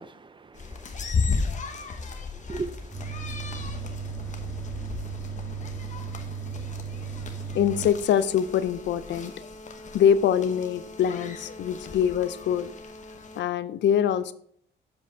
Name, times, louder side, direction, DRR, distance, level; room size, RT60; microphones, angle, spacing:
voice 1, 0.0-2.9, right 4 dB, 25° right, 0.5 m, -40 dB
sound 1, 0.5-13.4, left 4 dB, 40° left, 1.0 m, -35 dB
sound 2, 2.9-7.9, right 6 dB, 10° left, 1.9 m, -35 dB
voice 2, 7.5-9.3 9.9-12.7 13.4-14.3, left 9 dB, 65° left, 0.5 m, -24 dB
7.4 x 4.9 x 4.5 m
cardioid pair, 90°, 20 cm